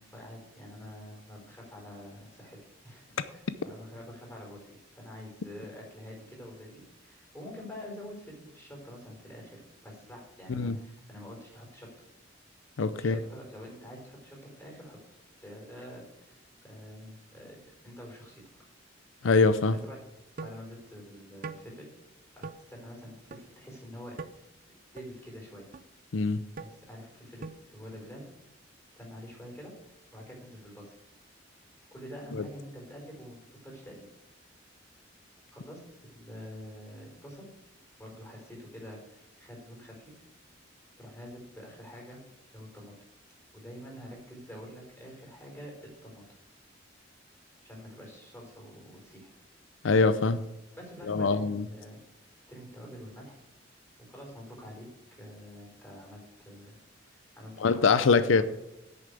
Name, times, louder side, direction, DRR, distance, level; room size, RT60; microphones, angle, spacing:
voice 1, 0.0-2.6 2.8-4.7 4.9-11.9 13.0-15.0 15.4-18.4 19.8-20.0 20.4-21.9 22.3-24.4 24.9-25.7 26.6-28.2 29.0-29.7 30.1-31.0 31.9-33.4 33.6-34.1 35.5-37.5 38.0-40.2 41.0-42.2 42.5-42.9 43.5-45.7 46.0-46.2 47.6-49.3 50.7-52.0 52.5-53.4 54.0-54.9 55.2-56.8 57.1-58.4, equal, 15° left, -2 dB, 4.5 m, -46 dB
voice 2, 12.8-13.2 19.2-19.8 26.1-26.4 32.4-32.5 49.8-50.4 51.1-51.6 57.6-58.4, left 4 dB, 90° left, 13 dB, 0.6 m, -23 dB
sound 1, 20.4-20.6 21.4-21.6 22.4-22.6 23.3-23.4 24.2-24.3 25.0-25.1 25.7-25.8 26.6-26.7 27.4-27.6, right 4 dB, 50° right, 0.5 m, -40 dB
8.7 x 6.7 x 8.3 m, 0.91 s
head